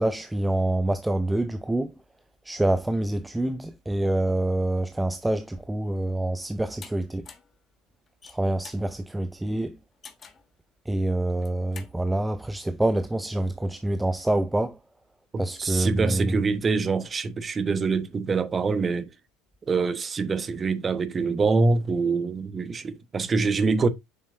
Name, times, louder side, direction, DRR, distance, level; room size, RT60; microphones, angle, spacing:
voice 1, 0.0-1.9 2.4-7.3 8.3-9.8 10.9-14.8 15.4-16.4, right 1 dB, 5° right, 0.5 m, -26 dB
sound 1, 6.8-6.9 7.3-7.5 8.1-8.9 10.0-10.5 11.3-11.9, left 5 dB, 30° left, 1.3 m, -46 dB
voice 2, 15.3-19.1 19.7-23.9, right 4 dB, 25° right, 1.1 m, -25 dB
7.9 x 6.3 x 2.6 m
figure-of-eight pair, 70°, 0 cm